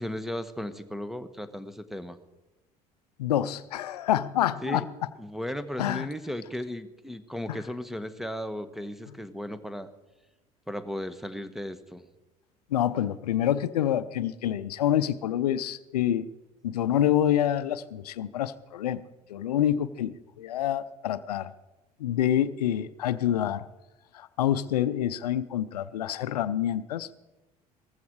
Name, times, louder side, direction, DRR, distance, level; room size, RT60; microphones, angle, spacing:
voice 1, 0.0-2.2 4.6-4.8 5.2-9.9 10.7-12.0, equal, ahead, 12 dB, 1.5 m, -35 dB
voice 2, 3.2-4.8 5.8-6.1 7.5-7.6 12.7-16.3 16.6-19.0 19.3-21.5 22.0-23.6 24.1-27.1, left 11 dB, 85° left, 14 dB, 0.6 m, -27 dB
19.0 x 14.5 x 4.8 m, 1.0 s
hypercardioid pair, 65°, 20 cm